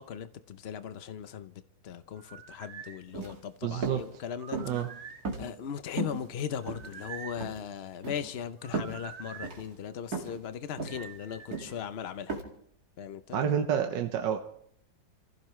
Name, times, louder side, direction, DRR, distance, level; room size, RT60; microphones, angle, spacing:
voice 1, 0.0-1.5 1.8-4.6 5.4-12.4 13.0-13.4, left 8 dB, 80° left, 11 dB, 0.5 m, -38 dB
sound 1, 2.2-3.0 4.3-5.3 6.6-7.4 8.6-9.5 10.9-11.7, right 7 dB, 90° right, 2.2 m, -46 dB
sound 2, 3.1-3.4 3.8-4.0 4.5-4.8 5.2-5.7 6.0-6.2 6.7-7.1 7.4-7.6 8.0-8.3 8.7-9.0 9.4-9.6 10.1-10.4 10.8-11.0 11.5-11.8 12.3-12.4, right 3 dB, 50° right, 2.6 m, -35 dB
voice 2, 3.6-4.0 4.6-4.9 13.3-14.4, right 8 dB, 70° right, 5 dB, 1.5 m, -28 dB
28.5 x 15.5 x 3.2 m, 0.66 s
omnidirectional pair, 2.1 m